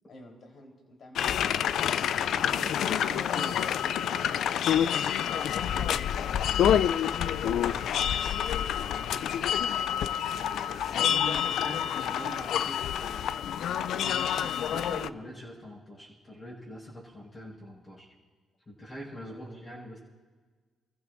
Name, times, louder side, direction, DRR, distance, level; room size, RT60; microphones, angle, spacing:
voice 1, 0.1-1.6 19.3-19.7, left 1 dB, 55° left, 1 dB, 3.9 m, -51 dB
sound 1, 1.2-15.1, left 9 dB, 75° left, 0.4 m, -28 dB
voice 2, 2.3-4.3 5.2-9.2 10.3-18.1 18.7-20.0, equal, 25° left, -6 dB, 5.4 m, -44 dB
28.5 x 15.0 x 2.6 m, 1.5 s
cardioid pair, 90°, 0 cm